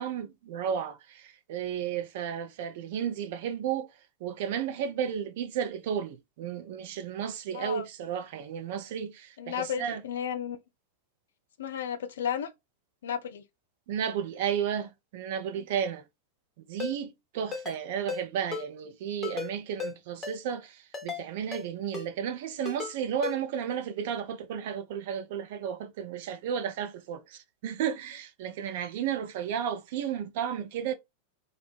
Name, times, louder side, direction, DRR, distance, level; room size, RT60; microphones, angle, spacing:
voice 1, 0.0-3.9 4.2-10.0 13.9-16.0 16.7-30.9, right 8 dB, 50° right, 0.4 m, -33 dB
voice 2, 7.5-7.9 9.4-10.6 11.6-12.5 13.0-13.4 15.6-15.7, left 8 dB, 60° left, 0.4 m, -33 dB
Ringtone, 16.8-16.9 17.5-17.8 18.1-18.2 18.5-18.6 19.2-19.5 19.8-19.9 20.2-20.4 20.9-21.2 21.5-21.6 21.9-22.1 22.6-22.9 23.2-23.3, left 6 dB, 15° left, 0.8 m, -35 dB
2.6 x 2.0 x 3.0 m
figure-of-eight pair, 90°, 0 cm